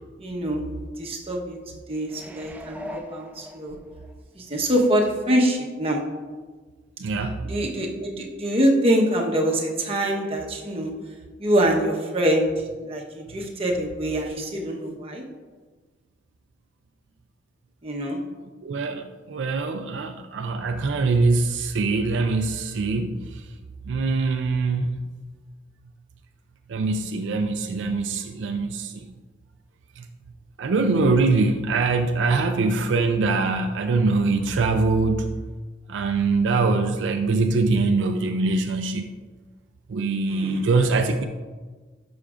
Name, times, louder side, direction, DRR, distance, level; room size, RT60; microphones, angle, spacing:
voice 1, 0.2-0.6 1.0-1.6 1.9-3.8 4.3-6.0 7.4-10.9 11.4-12.5 12.8-15.2 17.8-18.2 40.2-40.6, equal, 35° right, 0 dB, 1.1 m, -24 dB
sound 1, 2.1-4.1 4.6-4.7, equal, 10° right, 0.5 m, -40 dB
voice 2, 7.0-7.4 18.6-23.4 23.8-25.0 26.7-29.1 30.0-30.1 30.6-35.3 35.9-39.1 39.9-41.2, right 3 dB, 90° right, 6 dB, 0.4 m, -23 dB
11.5 x 5.9 x 2.5 m, 1.4 s
head